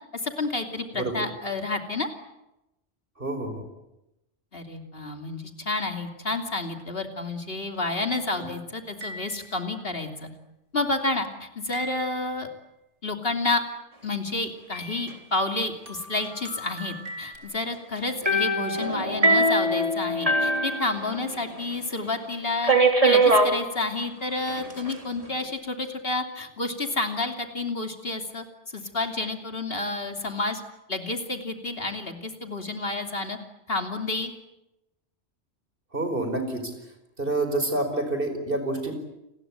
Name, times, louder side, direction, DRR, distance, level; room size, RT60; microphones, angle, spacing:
voice 1, 0.2-2.1 4.5-10.3 10.7-12.5 13.0-13.6 14.0-22.7 23.0-28.4 28.7-30.6 30.9-33.4 33.7-34.3, left 2 dB, 55° left, 5 dB, 3.1 m, -30 dB
voice 2, 3.2-3.7 8.4-8.5 35.9-36.7 37.2-38.9, right 2 dB, 50° right, 7 dB, 5.3 m, -28 dB
sound 1, 9.0-9.8 11.7-12.5 14.7-15.3 15.9-17.4, equal, 90° right, 5.5 m, -40 dB
sound 2, 18.3-21.5 21.7-21.8 22.6-23.5 24.5-24.9, right 2 dB, 30° right, 3.5 m, -22 dB
29.5 x 21.0 x 8.9 m, 0.92 s
omnidirectional pair, 1.2 m